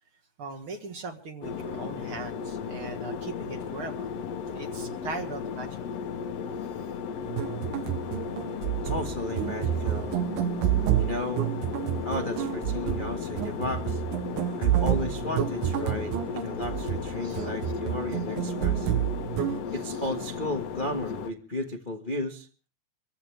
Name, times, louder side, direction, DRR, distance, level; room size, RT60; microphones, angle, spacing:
voice 1, 0.4-4.1 4.5-5.8 17.2-17.7, right 3 dB, 50° right, 2.4 m, -39 dB
sound 1, 1.4-21.3, left 6 dB, 65° left, 1.9 m, -35 dB
sound 2, 7.2-19.6, right 12 dB, 90° right, 2.4 m, -29 dB
voice 2, 8.8-10.2 10.9-11.5 12.0-14.0 14.6-18.9 19.7-22.5, left 2 dB, 35° left, 0.8 m, -34 dB
25.5 x 15.0 x 3.4 m
omnidirectional pair, 3.5 m